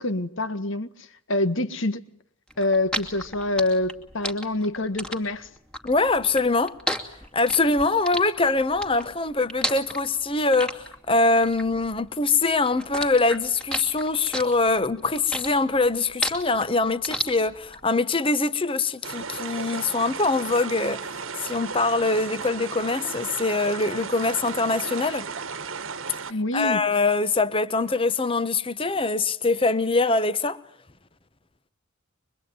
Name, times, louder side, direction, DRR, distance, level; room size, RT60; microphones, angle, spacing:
voice 1, 0.0-2.0 2.6-5.5 26.3-26.8, left 2 dB, 60° left, 1.6 m, -26 dB
sound 1, 2.5-12.3 12.7-17.8, equal, 5° left, 2.5 m, -32 dB
voice 2, 5.8-6.7 7.3-21.1 21.4-25.3 26.5-30.6, left 3 dB, 25° left, 1.1 m, -23 dB
sound 2, 19.0-26.3, right 5 dB, 65° right, 1.4 m, -35 dB
24.5 x 23.0 x 9.4 m
head